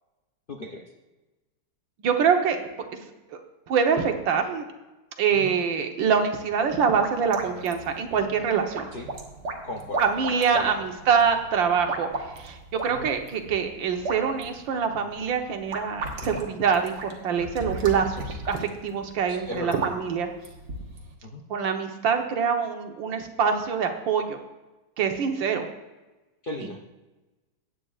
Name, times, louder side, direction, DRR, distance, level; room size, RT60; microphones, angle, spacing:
voice 1, 0.5-0.9 5.3-5.6 8.9-9.1 9.6-10.0 10.5-10.8 12.9-13.1 16.2-16.4 19.3-19.8 21.2-21.4 26.4-26.8, left 2 dB, 50° left, 1 dB, 0.6 m, -36 dB
voice 2, 2.0-2.7 3.3-3.4 3.7-4.6 5.2-8.9 10.0-20.3 21.5-24.4 25.0-25.7, right 6 dB, 90° right, 5 dB, 1.8 m, -25 dB
sound 1, 6.6-21.1, right 2 dB, 65° right, 1.9 m, -36 dB
17.0 x 8.9 x 2.4 m, 1.1 s
omnidirectional pair, 2.0 m